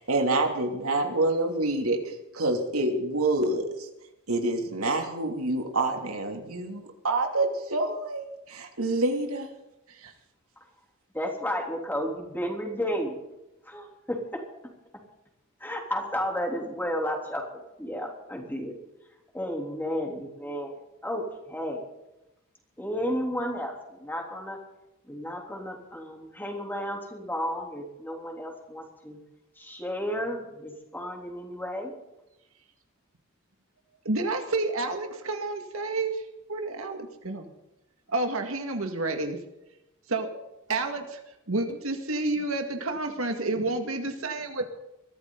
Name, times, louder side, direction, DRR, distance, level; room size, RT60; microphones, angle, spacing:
voice 1, 0.0-3.9 4.3-9.5 10.0-10.1, right 2 dB, 85° right, 3 dB, 2.9 m, -27 dB
voice 2, 11.1-13.2 13.7-14.2 15.6-17.4 17.8-18.8 19.3-20.8 21.0-21.2 21.5-21.8 22.8-23.7 24.0-24.6 25.1-29.2 29.6-31.9, equal, 10° left, 1 dB, 3.5 m, -32 dB
voice 3, 34.0-36.2 36.5-37.5 38.1-39.4 40.1-40.3 40.7-41.2 41.5-44.7, right 2 dB, 70° right, 4 dB, 2.1 m, -29 dB
22.5 x 14.5 x 4.0 m, 0.92 s
head